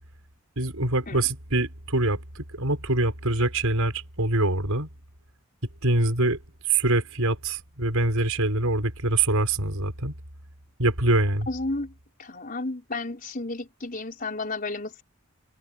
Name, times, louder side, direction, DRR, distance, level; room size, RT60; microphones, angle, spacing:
voice 1, 0.5-4.9 5.8-6.4 6.6-10.1 10.8-11.5, right 2 dB, 85° right, 5.2 m, -24 dB
voice 2, 11.5-11.9 12.2-15.0, left 2 dB, 40° left, 4.6 m, -32 dB
open air
head